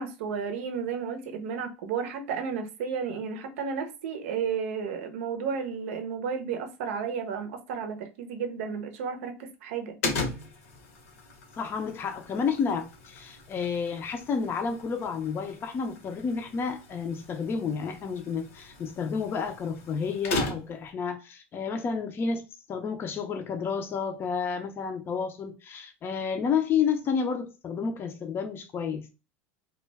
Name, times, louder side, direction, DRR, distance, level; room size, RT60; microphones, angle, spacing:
voice 1, 0.0-10.0, right 6 dB, 75° right, 0.6 m, -33 dB
sound 1, 10.0-20.9, left 2 dB, 80° left, 0.9 m, -38 dB
voice 2, 11.6-29.1, left 6 dB, 30° left, 0.4 m, -30 dB
2.2 x 2.2 x 3.2 m
hypercardioid pair, 100°, 7 cm